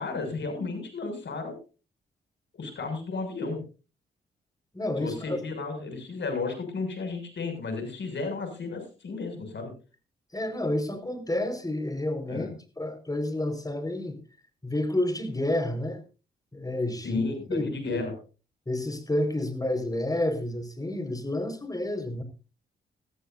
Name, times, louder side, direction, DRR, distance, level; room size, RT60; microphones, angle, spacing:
voice 1, 0.0-1.6 2.5-3.6 5.0-9.7 12.3-12.5 17.0-18.1, left 3 dB, 60° left, 6 dB, 6.8 m, -33 dB
voice 2, 4.7-5.4 10.3-12.5 12.8-14.2 14.6-16.0 16.5-17.2 17.5-18.1 18.7-22.2, left 1 dB, 15° left, 7 dB, 5.2 m, -29 dB
20.0 x 14.0 x 2.7 m, 0.34 s
supercardioid pair, 50°, 21 cm